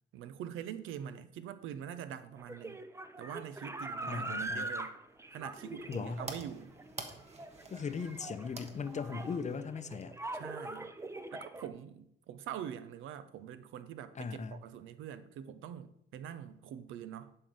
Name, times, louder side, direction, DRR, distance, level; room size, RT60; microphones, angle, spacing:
voice 1, 0.1-2.8 3.2-4.9 5.3-6.7 10.3-11.0 11.3-17.4, right 9 dB, 85° right, 0.7 m, -44 dB
sound 1, 2.4-11.7, right 2 dB, 15° right, 0.7 m, -42 dB
voice 2, 4.1-4.7 5.9-6.3 7.7-10.2 14.2-14.6, left 5 dB, 35° left, 0.7 m, -38 dB
sound 2, 5.1-10.5, right 3 dB, 35° right, 1.3 m, -50 dB
11.0 x 4.5 x 5.1 m
cardioid pair, 90°, 20 cm